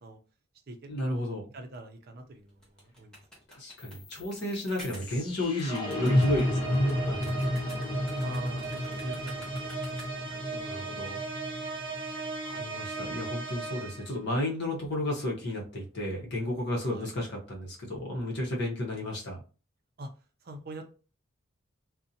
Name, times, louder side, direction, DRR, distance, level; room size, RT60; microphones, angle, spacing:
voice 1, 0.9-1.5 3.5-7.5 10.3-11.2 12.0-19.4, left 1 dB, 55° left, -1 dB, 0.8 m, -33 dB
voice 2, 1.5-3.2 8.2-10.4 16.9-17.1 20.0-20.1 20.4-20.8, right 2 dB, 50° right, 5 dB, 0.5 m, -44 dB
sound 1, 2.5-10.4, equal, 5° left, 0.8 m, -50 dB
sound 2, 3.8-13.8, left 1 dB, 25° left, 0.3 m, -32 dB
sound 3, 5.7-14.2, right 4 dB, 25° right, 0.9 m, -38 dB
2.5 x 2.1 x 2.6 m, 0.36 s
head